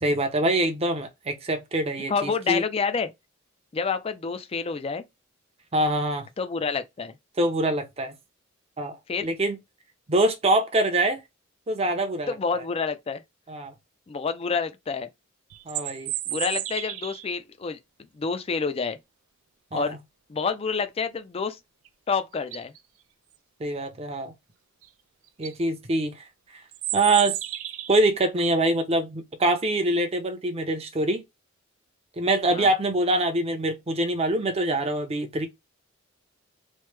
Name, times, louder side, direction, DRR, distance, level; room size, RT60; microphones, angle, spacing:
voice 1, 0.0-2.6 5.7-6.3 7.4-8.1 8.8-9.6 10.1-11.2 11.7-12.3 13.5-13.7 15.7-16.1 19.7-20.0 23.6-24.3 25.4-26.1 26.9-27.4 27.9-31.2 32.2-35.5, right 1 dB, 30° right, 0.6 m, -24 dB
voice 2, 2.1-3.1 3.7-5.0 6.4-7.2 9.1-9.3 12.3-13.2 14.1-15.1 16.3-17.8 18.1-19.0 19.7-20.0 20.3-21.6 22.1-22.7 32.5-32.7, left 5 dB, 30° left, 0.4 m, -28 dB
sound 1, 15.5-17.3 21.8-21.9 22.4-22.8 24.8-24.9 25.3-25.5 26.7-28.1, right 14 dB, 80° right, 0.4 m, -32 dB
3.1 x 2.1 x 3.2 m
head